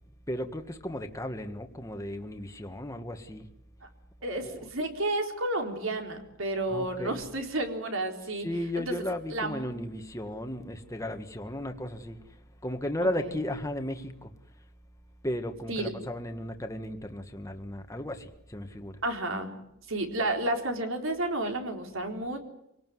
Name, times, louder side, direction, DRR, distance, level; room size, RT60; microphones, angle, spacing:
voice 1, 0.3-3.5 4.4-4.7 6.7-7.2 8.4-12.4 12.6-14.3 15.2-19.0, left 1 dB, 15° left, 1.7 m, -35 dB
voice 2, 4.2-8.5 8.7-8.8 9.3-9.7 13.2-13.3 15.7-15.9 19.0-19.6 19.9-22.4, right 2 dB, 70° right, 4.2 m, -31 dB
26.0 x 18.5 x 9.4 m
head